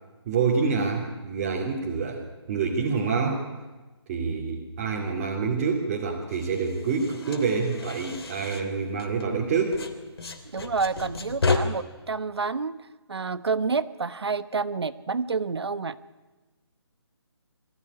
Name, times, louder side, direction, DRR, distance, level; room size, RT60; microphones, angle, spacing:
voice 1, 0.3-3.4 4.1-9.8, right 5 dB, 20° right, -3 dB, 2.6 m, -27 dB
sound 1, 6.3-9.4 9.7-11.6, left 4 dB, 60° left, 3.1 m, -32 dB
voice 2, 10.5-16.0, right 4 dB, 65° right, 14 dB, 1.2 m, -29 dB
24.0 x 15.5 x 9.8 m, 1.2 s
hypercardioid pair, 170°, 14 cm